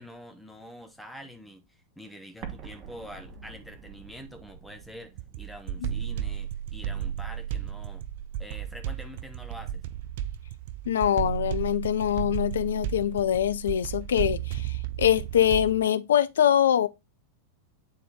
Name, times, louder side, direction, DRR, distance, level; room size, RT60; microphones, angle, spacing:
voice 1, 0.0-8.1 8.4-9.8, equal, ahead, 1.1 m, -46 dB
Explosion, 2.4-7.2, right 6 dB, 35° right, 1.3 m, -47 dB
sound 1, 5.2-15.8, right 10 dB, 50° right, 0.5 m, -33 dB
voice 2, 10.9-16.9, left 10 dB, 65° left, 0.6 m, -24 dB
8.8 x 4.2 x 3.8 m
figure-of-eight pair, 90°, 0 cm